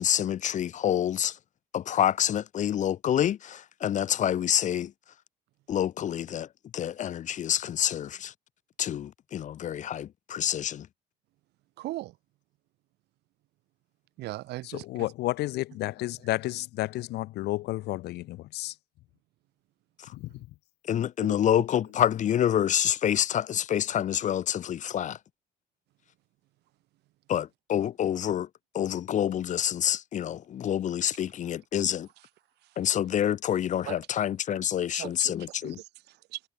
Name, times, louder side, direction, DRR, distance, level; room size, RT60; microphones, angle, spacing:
voice 1, 0.0-1.4 1.7-4.9 5.7-8.3 8.8-10.9 20.9-25.2 27.3-28.5 28.7-32.1 32.8-35.8, left 10 dB, 45° left, 0.7 m, -27 dB
voice 2, 11.8-12.1 14.2-14.8 21.3-21.4 33.8-34.0 34.5-34.6 34.9-35.3 35.6-36.4, right 17 dB, 80° right, 2.5 m, -38 dB
voice 3, 14.6-18.8 20.1-20.5, left 17 dB, 80° left, 1.2 m, -32 dB
cardioid pair, 110°, 17 cm